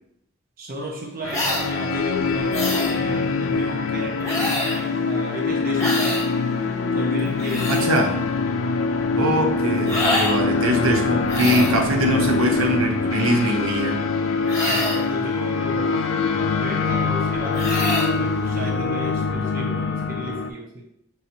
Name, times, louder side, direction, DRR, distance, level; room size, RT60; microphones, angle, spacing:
voice 1, 0.6-6.3 6.8-7.9 14.5-16.3 16.6-20.9, equal, 45° right, 0 dB, 0.5 m, -33 dB
sound 1, 1.2-20.5, left 4 dB, 70° left, 0.3 m, -24 dB
sound 2, 1.3-1.7 2.5-3.0 4.2-4.8 5.8-6.3 7.2-7.8 9.8-10.4 11.3-11.8 14.5-15.1 17.5-18.1, left 1 dB, 15° left, 1.3 m, -25 dB
voice 2, 7.7-8.2 9.2-14.0, right 1 dB, 80° right, 2 dB, 0.7 m, -22 dB
5.5 x 2.6 x 2.8 m, 0.77 s
head